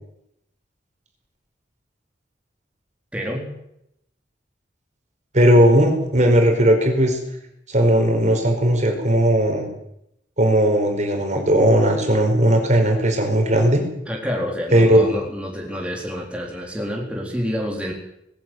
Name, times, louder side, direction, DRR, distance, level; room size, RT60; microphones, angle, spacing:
voice 1, 3.1-3.5 14.1-17.9, equal, 5° right, -1 dB, 3.9 m, -28 dB
voice 2, 5.3-7.2 7.7-9.7 10.4-13.8 14.7-15.0, equal, 40° right, 4 dB, 4.9 m, -17 dB
20.5 x 14.0 x 9.3 m, 0.79 s
head